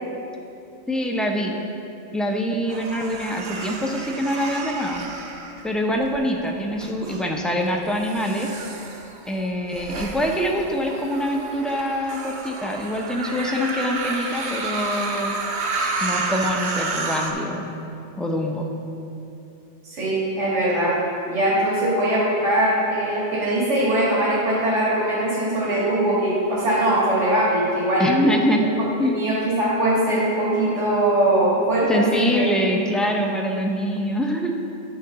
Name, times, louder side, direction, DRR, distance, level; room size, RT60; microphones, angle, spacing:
voice 1, 0.9-1.5 2.1-5.0 5.6-8.5 9.3-15.4 16.0-17.7 18.2-18.7 28.0-28.7 29.0-29.2 31.9-34.5, equal, ahead, 1 dB, 0.3 m, -24 dB
sound 1, 2.7-6.1 6.7-7.2 7.9-17.3, right 3 dB, 70° right, 1.1 m, -31 dB
voice 2, 19.8-21.0 21.3-28.2 29.0-32.0 32.3-32.4, right 1 dB, 90° right, -7 dB, 2.3 m, -21 dB
10.5 x 3.8 x 6.6 m, 2.8 s
omnidirectional pair, 1.2 m